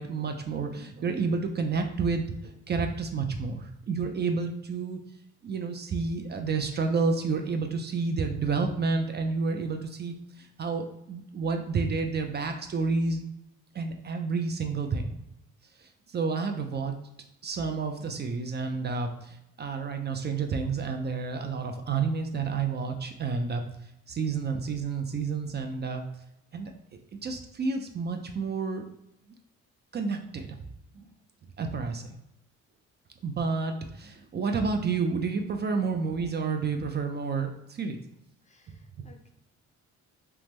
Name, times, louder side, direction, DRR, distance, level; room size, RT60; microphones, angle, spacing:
voice 1, 0.0-5.0 5.4-13.2 13.7-15.2 15.8-17.0 17.4-23.6 24.1-26.0 26.5-26.7 27.2-28.9 29.9-30.5 30.9-31.0 31.6-32.2 33.2-38.0, right 4 dB, 35° right, 4 dB, 0.4 m, -30 dB
voice 2, 38.4-39.3, left 3 dB, 25° left, 4 dB, 0.4 m, -59 dB
3.4 x 2.0 x 3.0 m, 0.84 s
cardioid pair, 90°, 30 cm